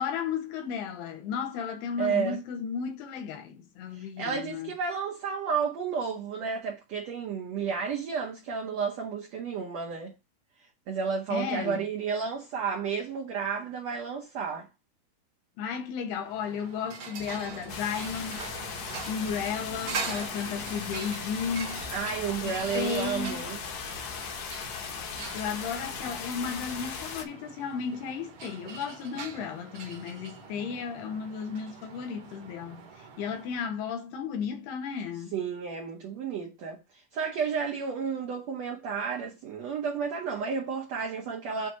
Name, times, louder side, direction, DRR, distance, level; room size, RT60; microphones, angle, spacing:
voice 1, 0.0-4.7 11.3-11.8 15.6-18.4 19.1-21.8 22.5-23.4 25.3-35.3, left 7 dB, 85° left, 3.2 m, -34 dB
voice 2, 2.0-2.4 3.9-10.1 10.9-14.7 21.9-23.6 35.3-36.8 37.1-41.7, right 6 dB, 85° right, 1.5 m, -32 dB
sound 1, 16.2-33.7, right 5 dB, 70° right, 1.3 m, -43 dB
sound 2, 17.2-23.5, left 1 dB, 15° left, 0.8 m, -48 dB
sound 3, 17.7-27.2, left 6 dB, 65° left, 1.9 m, -38 dB
8.0 x 2.7 x 6.1 m
omnidirectional pair, 4.5 m